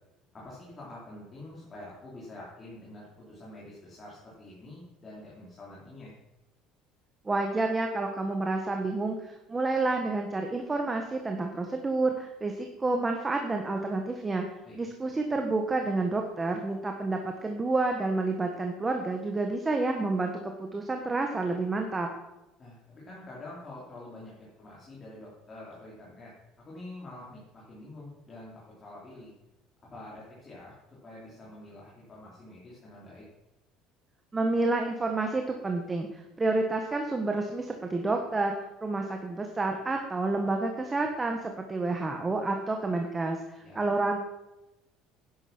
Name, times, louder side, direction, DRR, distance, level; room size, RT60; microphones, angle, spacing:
voice 1, 0.3-6.1 14.6-14.8 22.6-26.3 26.7-29.3 29.9-30.7 31.0-33.2 43.6-43.8, left 1 dB, 25° left, -6 dB, 4.1 m, -46 dB
voice 2, 7.2-14.5 14.7-22.1 34.3-38.5 38.8-44.2, right 3 dB, 15° right, 3 dB, 1.3 m, -29 dB
11.0 x 10.0 x 6.0 m, 0.97 s
cardioid pair, 145°, 0 cm